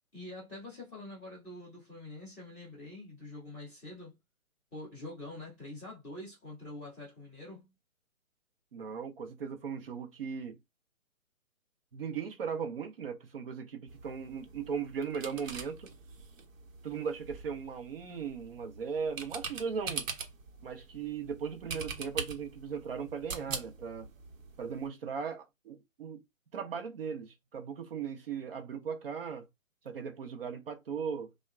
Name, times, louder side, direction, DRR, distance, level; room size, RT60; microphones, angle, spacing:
voice 1, 0.1-4.1 4.7-7.7, left 2 dB, ahead, 0.5 m, -45 dB
voice 2, 8.7-10.6 11.9-15.9 16.8-20.1 20.6-24.1 24.6-26.2 26.5-29.5 29.8-31.3, right 6 dB, 45° right, 0.7 m, -38 dB
sound 1, 13.9-24.9, right 5 dB, 65° right, 0.9 m, -43 dB
2.8 x 2.2 x 2.2 m
hypercardioid pair, 155°, 41 cm